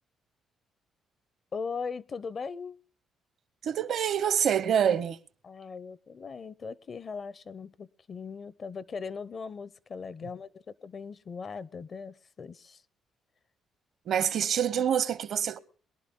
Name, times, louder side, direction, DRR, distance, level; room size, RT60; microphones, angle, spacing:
voice 1, 1.5-2.8 5.4-12.8, left 5 dB, 45° left, 0.6 m, -39 dB
voice 2, 3.6-5.2 14.1-15.6, right 8 dB, 65° right, 0.8 m, -26 dB
22.0 x 11.0 x 3.7 m
cardioid pair, 90°, 0 cm